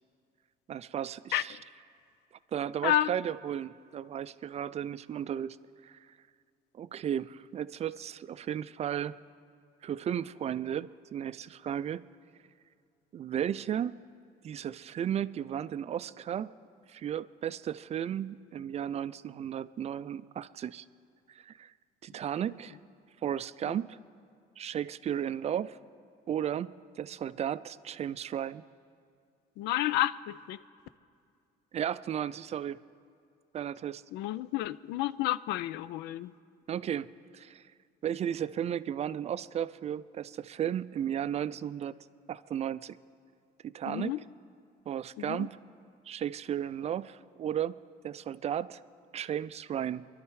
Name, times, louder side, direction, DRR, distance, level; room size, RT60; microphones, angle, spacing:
voice 1, 0.7-1.6 2.5-5.6 5.8-6.0 6.7-9.2 9.8-12.0 13.1-14.0 14.4-16.5 16.9-20.9 21.3-21.7 22.0-22.8 23.2-24.0 24.6-25.8 26.3-28.6 31.7-32.8 33.5-34.0 36.7-37.6 38.0-41.9 42.3-43.0 43.6-44.2 44.9-45.6 46.1-47.8 48.0-48.8 49.1-50.1, right 9 dB, 40° right, 15 dB, 0.4 m, -34 dB
voice 2, 29.6-30.6 34.1-36.3 43.9-44.2 45.3-45.5, left 14 dB, 85° left, 17 dB, 0.4 m, -30 dB
24.5 x 12.0 x 4.8 m, 2.3 s
cardioid pair, 110°, 17 cm